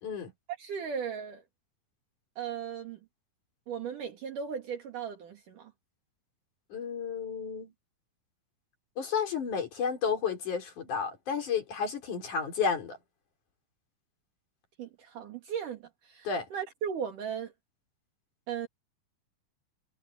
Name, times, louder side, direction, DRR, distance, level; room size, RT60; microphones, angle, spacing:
voice 1, 0.5-1.4 2.4-3.0 3.7-5.7 14.8-17.5 18.5-18.7, right 7 dB, 65° right, 3.6 m, -37 dB
voice 2, 6.7-7.7 9.0-13.0 16.3-16.5, left 6 dB, 60° left, 5.6 m, -32 dB
omnidirectional pair, 4.0 m